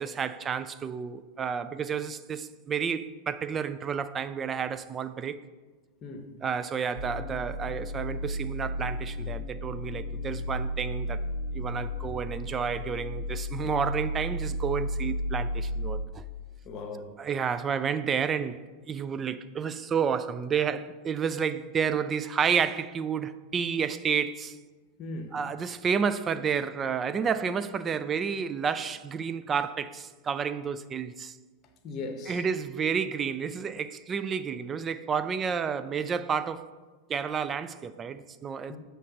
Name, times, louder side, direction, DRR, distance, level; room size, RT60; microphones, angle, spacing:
voice 1, 0.0-5.4 6.4-11.2 11.5-16.2 17.2-24.6 25.3-31.4 32.3-36.7 37.1-38.8, right 6 dB, 20° right, 0.3 m, -30 dB
sound 1, 6.9-16.0, left 1 dB, 80° right, 1.3 m, -33 dB
voice 2, 16.7-17.2 25.0-25.4 31.8-32.4 38.7-38.8, left 3 dB, 35° left, 0.9 m, -38 dB
7.6 x 3.3 x 6.2 m
figure-of-eight pair, 90°, 0 cm